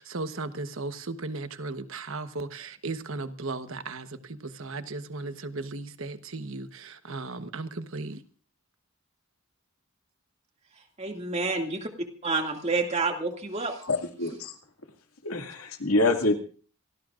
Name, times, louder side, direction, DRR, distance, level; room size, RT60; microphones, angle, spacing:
voice 1, 0.0-8.2, right 3 dB, 70° right, 1.2 m, -36 dB
voice 2, 11.0-11.9 12.2-13.8, right 3 dB, 30° right, 2.3 m, -28 dB
voice 3, 13.8-14.6 15.2-16.3, left 2 dB, 85° left, 2.3 m, -26 dB
27.0 x 18.0 x 2.5 m
head